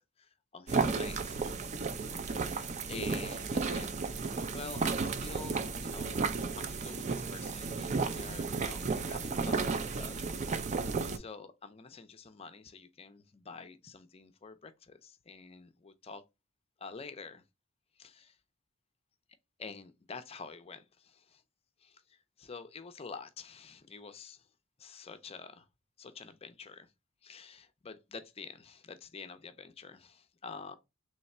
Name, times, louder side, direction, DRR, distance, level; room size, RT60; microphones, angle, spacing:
voice 1, 0.0-1.4 2.4-3.9 4.5-15.6 16.1-16.2 16.8-17.4 18.0-18.4 19.6-21.4 21.8-24.5 24.8-25.7 26.0-26.9 27.2-30.7, left 4 dB, 30° left, 0.5 m, -48 dB
sound 1, 0.7-11.2, right 4 dB, 35° right, 0.4 m, -33 dB
3.4 x 3.2 x 4.1 m
head